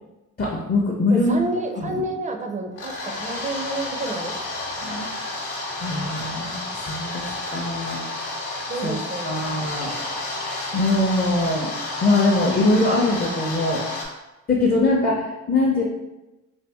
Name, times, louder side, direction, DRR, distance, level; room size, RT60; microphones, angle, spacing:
voice 1, 0.4-1.4 1.8-2.0 4.8-5.3 5.7-8.1 8.8-9.0 9.2-9.9 10.7-11.7 12.0-13.8 14.5-15.8, left 2 dB, 30° left, -3 dB, 0.6 m, -22 dB
voice 2, 1.1-4.3 8.7-9.4 9.7-10.2, right 1 dB, 25° right, 4 dB, 0.4 m, -30 dB
sound 1, 2.7-14.1, left 2 dB, 90° left, 0.8 m, -31 dB
2.7 x 2.4 x 3.4 m, 1.0 s
cardioid pair, 90°, 30 cm